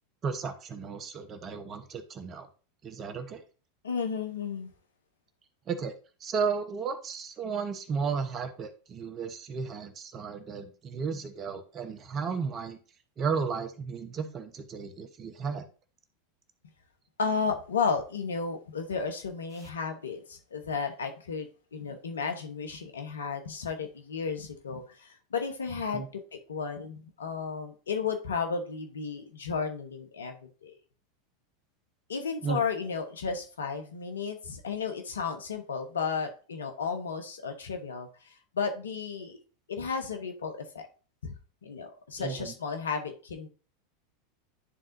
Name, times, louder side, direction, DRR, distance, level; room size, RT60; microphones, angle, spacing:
voice 1, 0.2-2.5 2.8-3.4 5.7-5.9 6.2-12.8 13.2-15.7 25.9-26.1 32.4-32.6 42.2-42.5, right 5 dB, 35° right, 9 dB, 1.0 m, -34 dB
voice 2, 3.8-4.7 17.2-30.8 32.1-38.1 38.5-39.4 39.7-40.9 41.2-41.3 41.6-43.5, left 5 dB, 80° left, 5 dB, 1.0 m, -33 dB
11.0 x 3.7 x 2.6 m, 0.37 s
hypercardioid pair, 90°, 0 cm